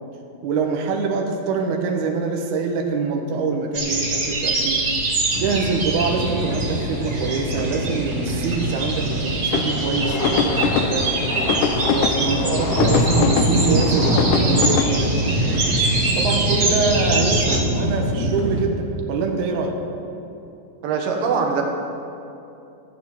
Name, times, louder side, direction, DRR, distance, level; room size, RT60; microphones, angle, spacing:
voice 1, 0.4-4.9 5.4-11.2 11.8-15.2 16.2-19.8, right 4 dB, 70° right, 1 dB, 2.4 m, -24 dB
sound 1, 3.7-17.6, right 2 dB, 35° right, 1.9 m, -25 dB
sound 2, 5.3-18.6, right 1 dB, 50° right, 3.6 m, -25 dB
sound 3, 9.5-15.0, left 6 dB, 80° left, 2.1 m, -24 dB
voice 2, 20.8-21.6, right 5 dB, 85° right, 1 dB, 3.2 m, -24 dB
14.5 x 9.4 x 7.2 m, 2.8 s
omnidirectional pair, 4.0 m